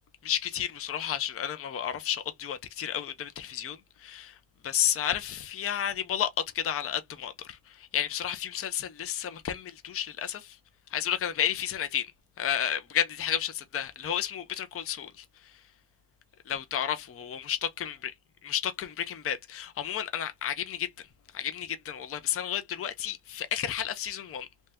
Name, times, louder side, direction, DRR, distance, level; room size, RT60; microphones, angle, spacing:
voice 1, 0.2-4.4 4.6-10.6 10.9-12.1 12.4-15.2 16.5-18.1 18.4-20.9 21.3-24.5, left 10 dB, 30° left, 0.5 m, -32 dB
3.3 x 2.7 x 3.4 m
wide cardioid pair, 150°, 49 cm